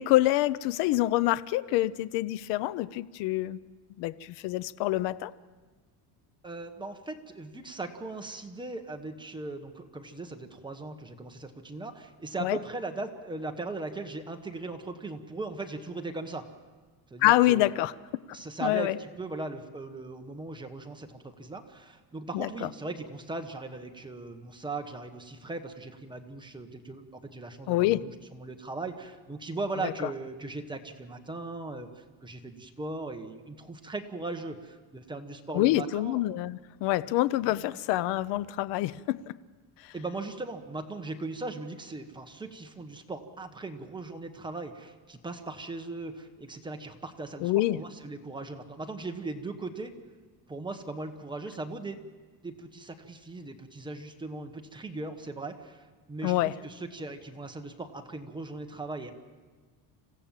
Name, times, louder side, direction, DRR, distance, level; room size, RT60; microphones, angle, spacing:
voice 1, 0.0-3.6 4.0-5.3 12.4-12.6 17.2-17.9 18.3-19.0 22.3-22.7 27.7-28.0 29.8-29.9 35.5-39.3 47.4-47.8 56.2-56.5, left 16 dB, 70° left, 17 dB, 0.7 m, -26 dB
voice 2, 6.4-16.5 17.1-17.7 18.3-36.2 37.4-37.7 39.9-49.9 50.5-52.0 52.4-59.1, right 3 dB, 10° right, 5 dB, 1.1 m, -38 dB
26.5 x 16.0 x 7.4 m, 1.4 s
cardioid pair, 165°, 44 cm